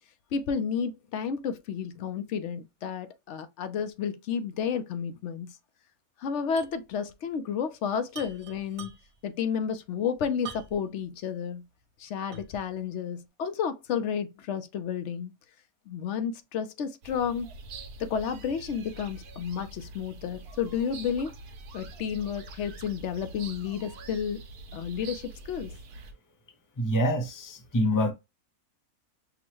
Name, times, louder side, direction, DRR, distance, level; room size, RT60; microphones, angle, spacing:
voice 1, 0.3-5.6 6.2-8.9 9.2-11.6 12.0-15.3 15.9-17.5 18.0-21.3 21.7-24.4 24.7-25.7, left 7 dB, 60° left, 0.8 m, -31 dB
sound 1, 6.6-6.8 7.1-7.2 8.1-9.3 10.4-11.0 11.5-11.6 12.3-12.7, right 7 dB, 65° right, 1.4 m, -44 dB
sound 2, 17.0-26.1, right 3 dB, 85° right, 1.3 m, -45 dB
voice 2, 26.8-28.1, equal, 25° left, 0.4 m, -26 dB
6.1 x 2.1 x 2.9 m
omnidirectional pair, 1.6 m